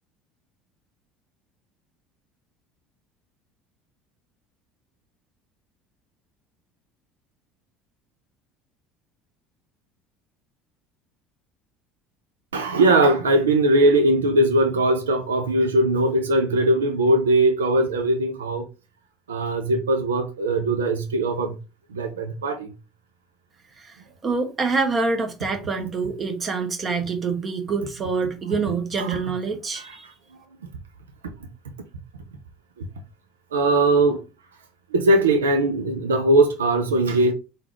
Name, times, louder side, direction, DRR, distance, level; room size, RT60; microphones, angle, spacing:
voice 1, 12.5-18.7 19.3-21.6 21.9-22.7 29.0-29.2 29.7-30.0 32.8-32.9 33.5-34.2 34.9-37.3, right 2 dB, 80° right, 0.6 m, -20 dB
voice 2, 23.8-30.1, right 4 dB, 35° right, 1.3 m, -26 dB
3.8 x 2.6 x 4.5 m
hypercardioid pair, 65°, 0 cm